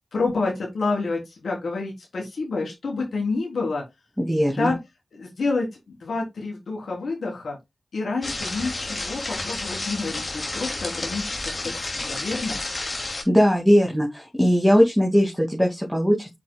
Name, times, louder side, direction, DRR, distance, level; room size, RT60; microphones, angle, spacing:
voice 1, 0.1-3.8 4.6-4.8 5.1-5.7 6.0-7.6 7.9-11.4 11.6-12.6, left 3 dB, 90° left, -1 dB, 3.6 m, -28 dB
voice 2, 4.2-4.7 13.3-16.3, equal, ahead, -1 dB, 2.3 m, -19 dB
sound 1, 8.2-13.2, left 2 dB, 50° left, 2.6 m, -31 dB
8.7 x 5.7 x 2.3 m, 0.19 s
cardioid pair, 45°, 0 cm